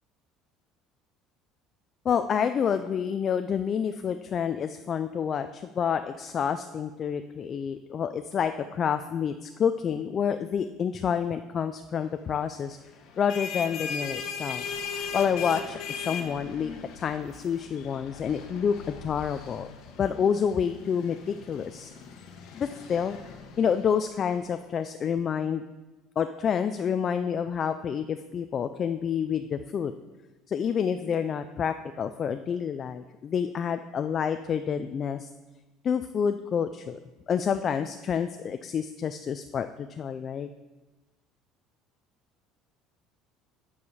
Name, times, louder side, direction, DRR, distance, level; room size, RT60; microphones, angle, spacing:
voice 1, 2.1-12.8 13.2-14.6 15.1-19.7 20.0-21.9 22.5-23.2 23.6-25.6 26.2-29.9 30.5-35.3 35.8-37.0 37.3-40.5, left 7 dB, 35° left, 9 dB, 0.3 m, -28 dB
sound 1, 13.0-24.4, left 5 dB, 65° left, 1.0 m, -38 dB
9.4 x 4.8 x 5.5 m, 1.2 s
cardioid pair, 135°, 0 cm